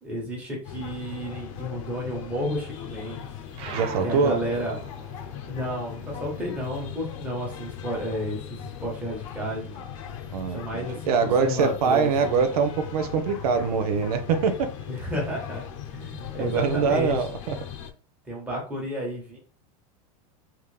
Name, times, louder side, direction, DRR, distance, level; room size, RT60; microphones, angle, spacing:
voice 1, 0.0-3.2 4.0-4.8 5.5-9.8 10.5-12.5 14.9-15.7 15.9-17.2 18.3-19.4, equal, 5° right, 1.3 m, -32 dB
sound 1, 0.6-17.9, left 9 dB, 60° left, 0.8 m, -39 dB
sound 2, 3.5-8.4 8.7-10.2, right 6 dB, 30° right, 0.5 m, -42 dB
voice 2, 3.7-4.4 10.3-14.7 16.4-17.6, right 5 dB, 85° right, 0.7 m, -24 dB
3.6 x 2.8 x 3.3 m
supercardioid pair, 165°, 19 cm